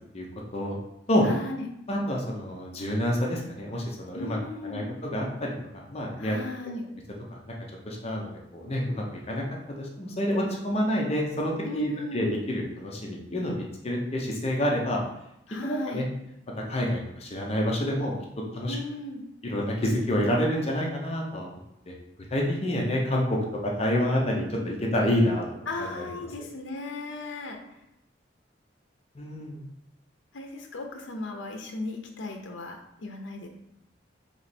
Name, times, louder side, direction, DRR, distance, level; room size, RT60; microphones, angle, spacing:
voice 1, 1.2-1.7 4.1-4.9 6.2-6.9 11.6-12.3 15.5-16.0 18.7-19.2 25.7-27.6 30.3-33.5, left 2 dB, 85° left, 3 dB, 0.6 m, -36 dB
voice 2, 1.9-4.4 4.6-6.4 7.3-7.5 7.8-15.0 15.6-16.1 16.7-18.1 18.5-18.8 19.4-21.5 21.9-22.0 22.3-25.4 25.8-26.0 29.1-29.6, left 1 dB, 35° left, -1 dB, 0.7 m, -28 dB
3.2 x 3.1 x 4.2 m, 0.84 s
head